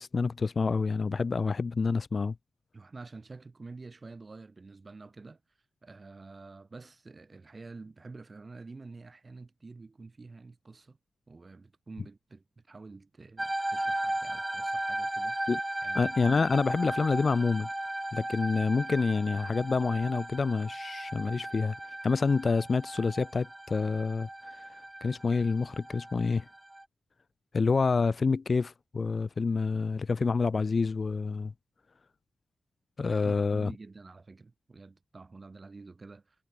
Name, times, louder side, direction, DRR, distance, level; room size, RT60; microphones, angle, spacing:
voice 1, 0.0-2.3 15.5-15.6 15.9-17.7 18.1-21.7 22.0-24.3 25.0-26.4 27.5-31.5 33.0-33.7, left 4 dB, 45° left, 1.2 m, -27 dB
voice 2, 2.7-5.4 5.8-11.0 11.3-15.5 15.8-16.1 33.2-36.4, right 3 dB, 35° right, 7.6 m, -48 dB
sound 1, 13.4-26.8, right 1 dB, 15° right, 3.8 m, -36 dB
cardioid pair, 70°, 0 cm